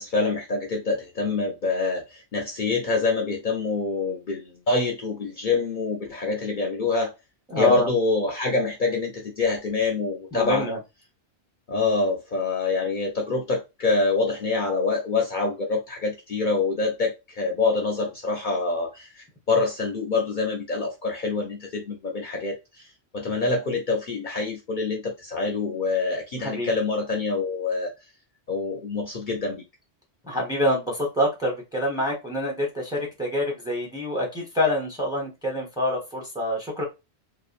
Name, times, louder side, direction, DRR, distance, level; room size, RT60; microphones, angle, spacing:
voice 1, 0.0-7.1 7.6-10.6 11.7-22.6 23.1-27.9 28.5-29.6, left 3 dB, 55° left, 0.7 m, -26 dB
voice 2, 7.5-7.9 10.3-10.8 26.4-26.7 30.2-36.8, left 1 dB, 5° right, 0.8 m, -26 dB
2.8 x 2.3 x 2.4 m
omnidirectional pair, 1.1 m